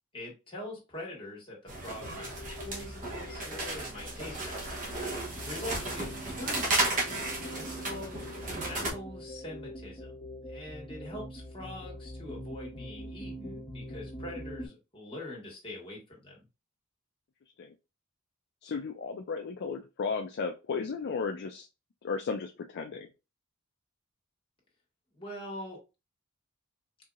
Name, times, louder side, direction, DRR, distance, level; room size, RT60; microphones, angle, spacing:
voice 1, 0.1-4.6 5.5-7.2 7.5-8.2 8.7-10.1 10.4-16.4 25.1-25.8, left 1 dB, 25° left, -2 dB, 1.7 m, -43 dB
sound 1, 1.7-8.9, right 2 dB, 35° right, 1.0 m, -34 dB
sound 2, 2.0-14.7, left 1 dB, 10° left, 1.5 m, -44 dB
voice 2, 18.6-21.7 22.0-23.1, left 5 dB, 50° left, 4 dB, 0.4 m, -34 dB
4.5 x 2.7 x 2.4 m, 0.27 s
head